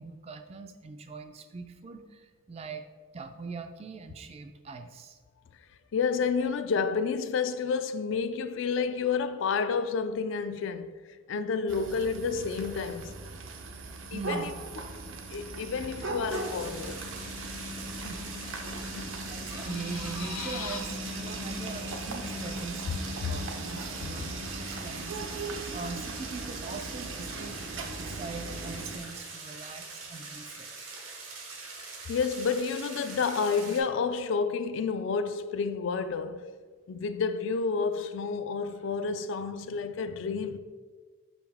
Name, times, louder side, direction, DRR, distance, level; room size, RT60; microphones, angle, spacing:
voice 1, 0.0-2.9 3.1-5.2 14.1-14.5 17.8-18.2 18.7-19.0 19.3-30.7, right 4 dB, 30° right, 0.3 m, -42 dB
voice 2, 5.9-10.9 11.3-13.1 14.1-14.5 15.0-17.0 18.9-19.2 23.2-23.4 24.3-24.4 32.1-36.5 36.9-40.6, left 5 dB, 65° left, 0.3 m, -30 dB
sound 1, 11.7-29.0, right 2 dB, 70° right, 0.6 m, -38 dB
sound 2, 12.3-16.2 16.5-16.6 16.8-17.9 18.1-18.8 19.1-20.8, left 6 dB, 90° left, 0.7 m, -43 dB
sound 3, 16.3-33.8, right 3 dB, 90° right, 1.3 m, -43 dB
5.5 x 5.1 x 3.5 m
head